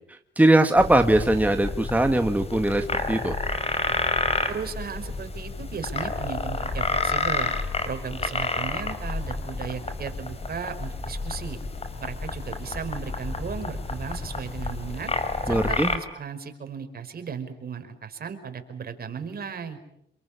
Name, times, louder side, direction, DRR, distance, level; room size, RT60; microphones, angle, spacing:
voice 1, 0.1-3.3 15.5-15.9, right 1 dB, 10° right, 6 dB, 1.8 m, -21 dB
sound 1, 0.8-16.0, left 3 dB, 30° left, 4.6 m, -30 dB
voice 2, 4.5-7.5 7.9-11.6 12.0-15.1 15.5-19.8, right 6 dB, 50° right, 7 dB, 5.1 m, -36 dB
27.5 x 23.5 x 8.8 m, 0.77 s
cardioid pair, 90°, 20 cm